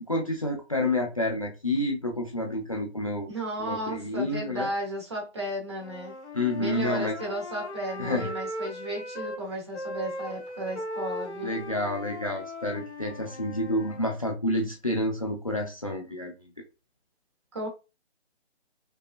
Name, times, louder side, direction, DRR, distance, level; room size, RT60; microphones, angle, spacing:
voice 1, 0.1-3.3 3.6-4.7 6.3-7.1 8.0-8.3 11.4-16.3, left 1 dB, 30° left, 0.4 m, -29 dB
voice 2, 3.3-6.2 6.6-11.6 17.5-17.7, right 1 dB, 25° right, 1.1 m, -34 dB
Wind instrument woodwind instrument, 5.8-9.4 9.7-14.0, left 1 dB, 85° left, 0.9 m, -38 dB
5.3 x 2.1 x 2.4 m
figure-of-eight pair, 150°, 33 cm